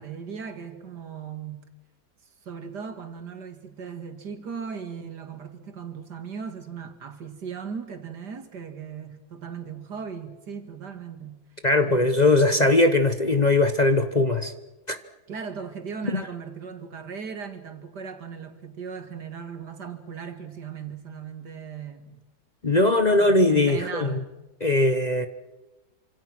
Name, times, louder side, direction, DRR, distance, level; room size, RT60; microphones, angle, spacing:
voice 1, 0.0-1.7 2.5-11.4 11.8-12.8 15.3-22.2 23.1-24.3, right 6 dB, 75° right, 2.7 m, -38 dB
voice 2, 11.6-14.5 14.9-15.0 16.1-16.2 22.6-24.2 24.6-25.3, left 2 dB, 30° left, 1.1 m, -20 dB
27.0 x 26.5 x 6.2 m
omnidirectional pair, 1.8 m